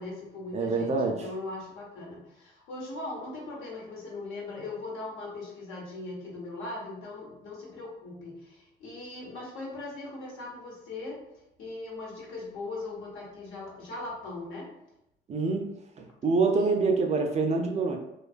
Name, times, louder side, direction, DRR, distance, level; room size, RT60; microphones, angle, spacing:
voice 1, 0.0-11.2 11.6-14.7 16.5-16.7, left 2 dB, 90° left, -4 dB, 0.9 m, -39 dB
voice 2, 0.5-1.2 15.3-15.7 16.0-18.0, right 4 dB, 35° right, 3 dB, 0.4 m, -26 dB
2.4 x 2.3 x 2.4 m, 0.84 s
cardioid pair, 90°, 20 cm